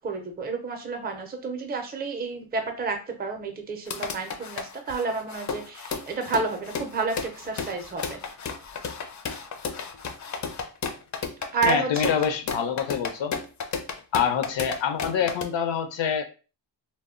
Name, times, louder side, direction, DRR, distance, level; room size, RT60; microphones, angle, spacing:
voice 1, 0.0-8.2 11.5-12.1, right 4 dB, 25° right, 4 dB, 0.4 m, -30 dB
sound 1, 3.9-15.4, left 5 dB, 45° left, 0.4 m, -33 dB
voice 2, 11.7-13.3 14.1-16.2, left 7 dB, 85° left, 7 dB, 0.6 m, -26 dB
2.1 x 2.0 x 3.6 m, 0.34 s
wide cardioid pair, 140°, 43 cm